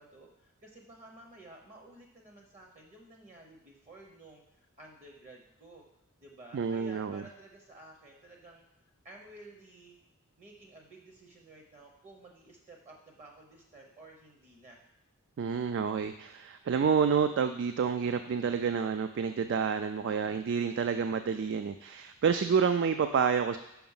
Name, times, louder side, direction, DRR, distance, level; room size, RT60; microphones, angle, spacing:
voice 1, 0.0-5.8 6.2-8.6 9.0-10.0 10.4-14.9, right 2 dB, 35° right, 1 dB, 0.8 m, -53 dB
voice 2, 6.5-7.2 15.4-23.6, right 6 dB, 55° right, 9 dB, 0.3 m, -29 dB
5.8 x 5.1 x 5.5 m, 0.86 s
head